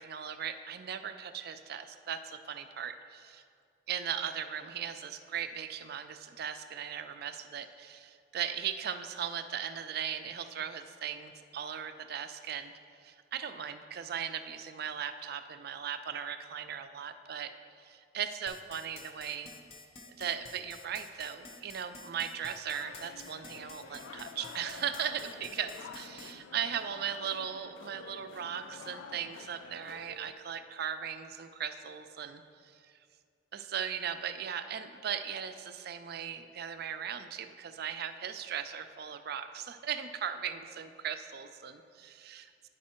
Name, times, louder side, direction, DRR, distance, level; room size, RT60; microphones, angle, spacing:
voice 1, 0.0-3.4 3.9-12.7 13.0-17.5 17.8-19.5 20.1-33.0 33.5-42.7, right 8 dB, 55° right, 9 dB, 0.4 m, -38 dB
sound 1, 18.5-26.3, left 3 dB, 30° left, 0.6 m, -50 dB
sound 2, 22.7-30.3, left 5 dB, 85° left, 0.4 m, -49 dB
9.4 x 5.3 x 4.3 m, 2.3 s
head